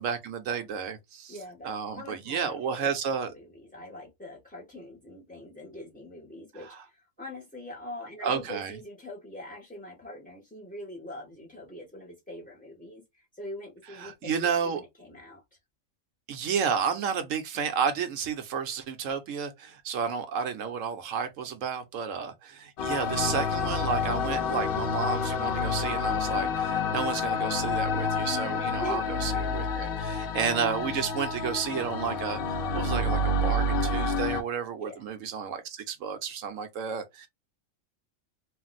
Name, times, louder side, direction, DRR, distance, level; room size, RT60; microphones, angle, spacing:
voice 1, 0.0-1.4 1.6-3.3 6.6-6.8 8.2-8.7 14.0-14.8 16.3-37.3, right 7 dB, 75° right, 1.0 m, -31 dB
voice 2, 1.3-3.0 3.3-15.4 28.8-29.0 34.8-35.0, left 1 dB, 10° left, 0.4 m, -43 dB
sound 1, 22.8-34.4, left 3 dB, 65° left, 0.5 m, -29 dB
2.5 x 2.0 x 3.9 m
omnidirectional pair, 1.4 m